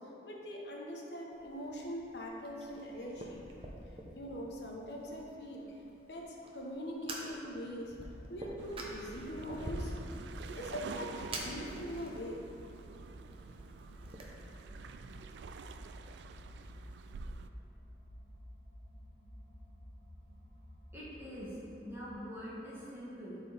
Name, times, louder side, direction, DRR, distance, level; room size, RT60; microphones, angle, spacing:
voice 1, 0.2-3.5 4.2-5.8 6.1-7.9 8.3-9.9 10.5-12.4, equal, 80° left, -1 dB, 1.0 m, -42 dB
Fire, 1.3-14.2, right 1 dB, 30° right, 0.8 m, -47 dB
sound 1, 8.6-22.4, equal, 45° left, 1.0 m, -55 dB
sound 2, 8.6-17.5, right 4 dB, 85° right, 0.3 m, -48 dB
voice 2, 20.9-21.6 21.8-23.4, equal, 15° right, -9 dB, 1.9 m, -44 dB
12.0 x 4.5 x 3.4 m, 2.7 s
head